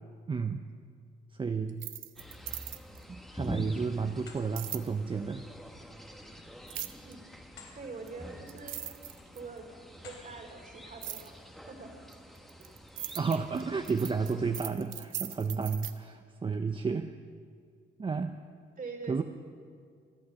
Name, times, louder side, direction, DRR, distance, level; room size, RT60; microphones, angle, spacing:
voice 1, 0.3-0.6 1.4-1.9 3.1-5.4 13.2-17.1 18.0-18.4 19.1-19.2, right 5 dB, 25° right, 7 dB, 0.6 m, -32 dB
sound 1, 1.7-3.0 4.6-4.9 6.7-7.1 8.1-8.2 8.5-9.6 11.0-11.3 12.1-15.9, right 12 dB, 80° right, 0.8 m, -39 dB
sound 2, 2.2-14.6, equal, ahead, 1.4 m, -46 dB
sound 3, 3.1-3.7 4.1-4.5 6.6-7.8 8.2-8.4 9.0-9.4 9.9-10.3, left 5 dB, 80° left, 3.8 m, -53 dB
voice 2, 7.7-8.8 9.3-9.6 10.0-11.4 11.7-11.9 18.8-19.2, right 4 dB, 45° right, 4 dB, 2.7 m, -44 dB
25.5 x 8.6 x 6.4 m, 2.1 s
cardioid pair, 90°, 20 cm